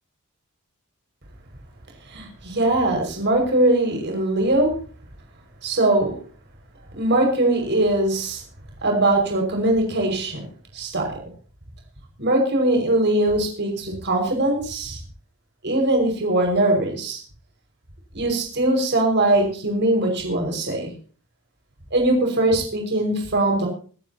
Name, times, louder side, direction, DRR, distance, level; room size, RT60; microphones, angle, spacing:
voice 1, 2.1-4.7 5.6-6.2 6.9-8.4 8.8-10.5 10.7-11.2 12.2-15.0 15.6-17.2 18.1-20.9 21.9-23.7, right 1 dB, 55° right, 2 dB, 5.7 m, -21 dB
25.5 x 12.5 x 2.9 m, 0.41 s
head